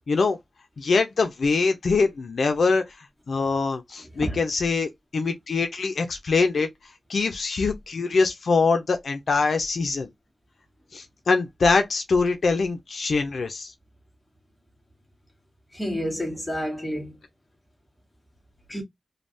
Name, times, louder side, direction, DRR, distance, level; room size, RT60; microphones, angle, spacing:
voice 1, 0.1-0.4 0.8-2.8 3.3-6.7 7.1-10.1 10.9-13.7, left 4 dB, 75° left, 0.5 m, -23 dB
voice 2, 15.7-17.1 18.7-18.8, equal, 10° left, 1.2 m, -29 dB
3.3 x 2.2 x 2.5 m
wide cardioid pair, 120°, 0 cm